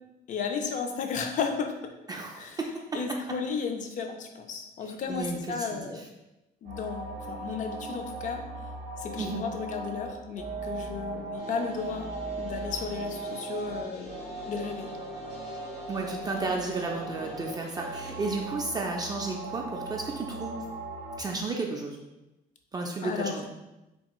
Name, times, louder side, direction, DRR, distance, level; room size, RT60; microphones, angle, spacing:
voice 1, 0.3-1.9 2.4-2.6 2.9-6.0 6.6-8.4 9.0-12.1 12.4-14.2 14.5-14.9 23.0-23.3, left 5 dB, 50° left, 5 dB, 0.5 m, -34 dB
voice 2, 2.1-2.8 5.1-6.0 9.2-9.4 15.9-20.6 21.2-22.0 22.7-23.5, right 3 dB, 25° right, 0 dB, 0.3 m, -33 dB
sound 1, 6.7-21.2, right 3 dB, 65° right, 0.6 m, -38 dB
sound 2, 11.4-18.4, left 3 dB, 85° left, 0.9 m, -47 dB
3.4 x 2.3 x 2.9 m, 0.97 s
cardioid pair, 110°, 17 cm